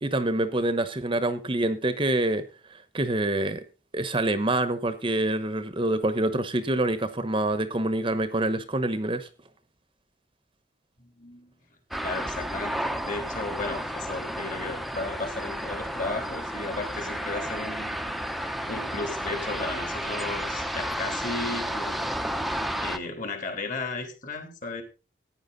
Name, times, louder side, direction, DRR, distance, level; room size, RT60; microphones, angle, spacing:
voice 1, 0.0-3.6 3.9-9.3, right 1 dB, 25° right, 1.0 m, -26 dB
voice 2, 11.2-11.5 12.0-18.0 18.3-22.1 22.4-24.8, left 3 dB, 45° left, 3.4 m, -35 dB
sound 1, 11.9-23.0, equal, ahead, 0.8 m, -32 dB
14.5 x 9.8 x 4.0 m
head